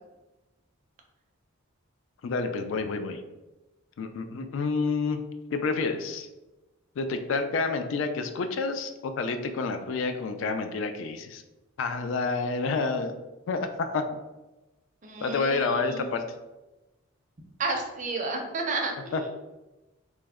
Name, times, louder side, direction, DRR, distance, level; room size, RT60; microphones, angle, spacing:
voice 1, 2.2-3.2 4.0-5.2 5.5-6.3 7.0-11.4 11.8-13.1 13.5-14.0 15.2-16.2 19.1-19.3, left 4 dB, 60° left, 7 dB, 0.3 m, -29 dB
voice 2, 15.0-16.1 17.6-19.3, right 3 dB, 35° right, 3 dB, 0.4 m, -31 dB
3.2 x 2.0 x 3.5 m, 1.1 s
head